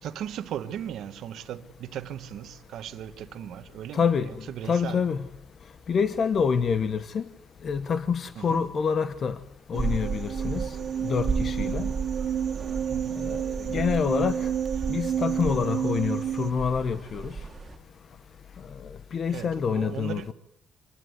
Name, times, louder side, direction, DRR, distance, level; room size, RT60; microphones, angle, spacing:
voice 1, 0.0-5.1 8.3-8.6 12.8-13.2 14.8-14.9 19.3-20.3, right 10 dB, 65° right, 1.2 m, -37 dB
voice 2, 3.9-4.3 4.6-5.2 5.9-7.2 7.6-9.4 9.7-10.8 11.0-11.9 13.2-14.5 14.9-17.3 19.1-20.3, left 6 dB, 40° left, 0.9 m, -27 dB
sound 1, 9.7-17.8, right 5 dB, 25° right, 2.4 m, -34 dB
sound 2, 9.7-16.5, right 9 dB, 45° right, 0.9 m, -30 dB
25.5 x 20.5 x 9.5 m
cardioid pair, 145°, 0 cm